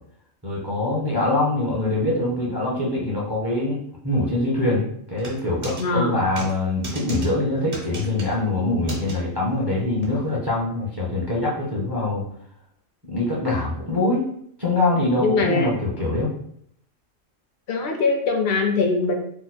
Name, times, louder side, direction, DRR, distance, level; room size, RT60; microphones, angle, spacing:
voice 1, 0.4-12.2 13.1-14.2 14.6-16.3, left 2 dB, 25° right, -5 dB, 0.6 m, -24 dB
sound 1, 5.2-5.8 6.4-6.5 6.8-7.3 7.7-8.3 8.9-9.1 10.0-10.1, right 1 dB, 50° right, 1.0 m, -33 dB
voice 2, 5.8-6.3 15.2-15.7 17.7-19.1, left 4 dB, 60° left, 2 dB, 0.7 m, -22 dB
2.9 x 2.1 x 4.1 m, 0.69 s
omnidirectional pair, 1.3 m